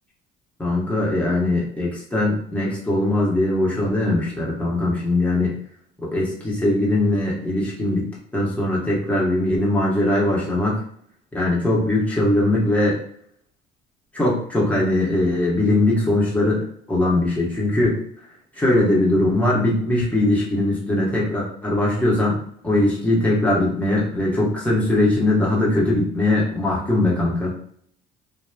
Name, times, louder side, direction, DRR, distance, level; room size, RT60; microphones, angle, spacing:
voice 1, 0.6-5.6 6.0-10.8 11.3-13.0 14.1-18.0 18.6-27.6, left 1 dB, 5° left, -5 dB, 1.1 m, -21 dB
3.0 x 2.2 x 2.3 m, 0.64 s
supercardioid pair, 85°, 21 cm